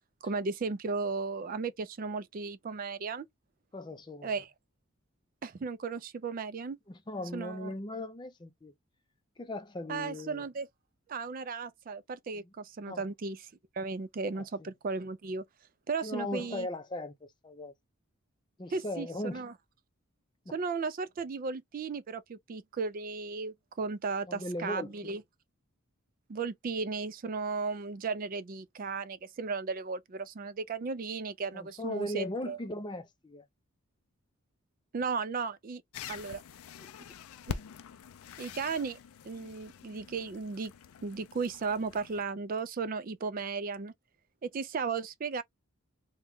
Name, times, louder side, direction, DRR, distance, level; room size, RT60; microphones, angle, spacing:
voice 1, 0.2-3.3 4.2-4.5 5.4-6.8 7.3-7.7 9.9-10.7 11.1-13.4 13.7-15.4 15.9-16.7 18.7-19.5 20.5-25.2 26.3-32.6 34.9-35.8 36.1-36.4 37.5-37.6 38.4-39.0 39.2-40.7 41.0-43.9 44.4-45.4, right 4 dB, 40° right, 0.3 m, -35 dB
voice 2, 3.7-4.3 6.9-8.7 9.4-10.4 12.9-13.1 14.4-14.7 16.0-17.7 18.6-19.5 20.5-20.6 24.3-25.2 31.5-33.5 36.8-36.9, left 1 dB, 20° left, 0.5 m, -38 dB
sound 1, 35.9-42.2, left 7 dB, 80° left, 0.4 m, -45 dB
3.0 x 2.2 x 3.6 m
head